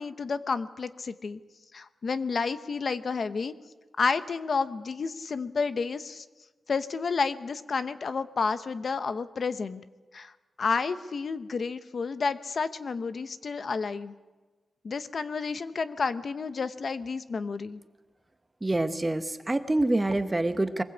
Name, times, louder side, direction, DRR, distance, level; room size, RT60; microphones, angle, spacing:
voice 1, 0.0-1.4 1.7-3.5 4.0-6.2 6.7-9.8 10.1-10.3 10.6-14.1 14.8-17.8, left 4 dB, 50° left, 12 dB, 0.8 m, -30 dB
voice 2, 18.6-20.8, right 2 dB, 15° right, 9 dB, 1.1 m, -26 dB
23.0 x 20.5 x 8.4 m, 1.2 s
wide cardioid pair, 150°, 0 cm